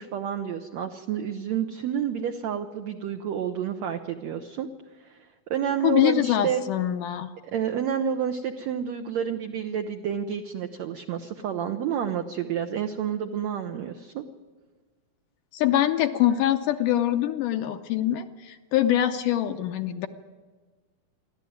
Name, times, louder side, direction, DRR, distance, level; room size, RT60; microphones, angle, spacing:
voice 1, 0.0-4.7 5.0-6.6 7.4-14.2, right 8 dB, 75° right, 5 dB, 1.6 m, -29 dB
voice 2, 5.8-7.3 15.5-20.1, left 12 dB, 75° left, 7 dB, 2.1 m, -24 dB
28.0 x 12.0 x 9.4 m, 1.4 s
omnidirectional pair, 4.2 m